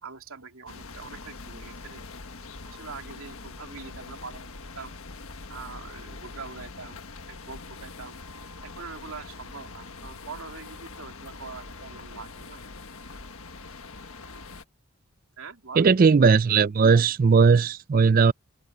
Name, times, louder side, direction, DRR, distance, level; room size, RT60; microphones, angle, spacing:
voice 1, 0.0-2.1 2.6-4.5 4.7-5.0 5.5-7.0 7.3-8.1 8.6-12.6 15.4-15.9, right 4 dB, 75° right, 2.9 m, -43 dB
sound 1, 0.7-14.6, left 3 dB, 75° left, 1.5 m, -43 dB
voice 2, 15.8-18.3, right 5 dB, 40° right, 0.4 m, -18 dB
head